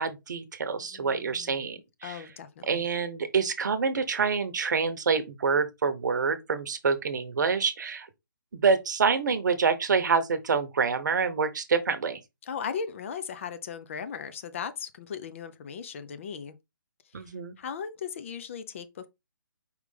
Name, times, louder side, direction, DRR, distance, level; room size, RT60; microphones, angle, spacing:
voice 1, 0.0-2.2 2.7-8.1 8.5-12.2 17.1-17.5, right 5 dB, 60° right, 0.8 m, -27 dB
voice 2, 0.9-2.8 12.4-16.6 17.2-17.3 17.6-19.1, left 7 dB, 40° left, 0.5 m, -38 dB
4.8 x 3.2 x 3.2 m
hypercardioid pair, 150°, 11 cm